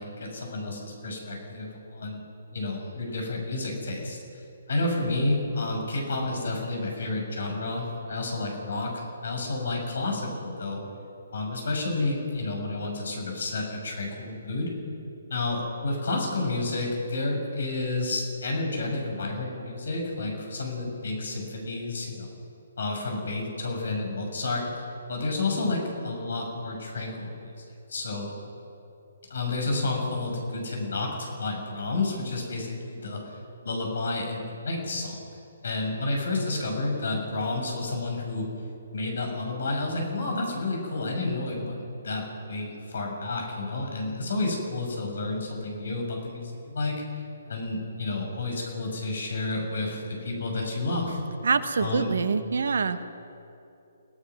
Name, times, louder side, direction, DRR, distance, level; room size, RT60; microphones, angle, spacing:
voice 1, 0.0-2.2 2.5-4.2 4.7-10.8 11.3-14.7 15.3-22.3 22.8-24.7 25.1-28.3 29.3-35.2 35.6-38.5 38.9-51.2 51.8-52.1, left 2 dB, 55° left, 1 dB, 6.8 m, -30 dB
voice 2, 51.4-53.0, right 5 dB, 60° right, 12 dB, 1.2 m, -25 dB
29.5 x 18.5 x 6.2 m, 2.8 s
figure-of-eight pair, 135°, 0 cm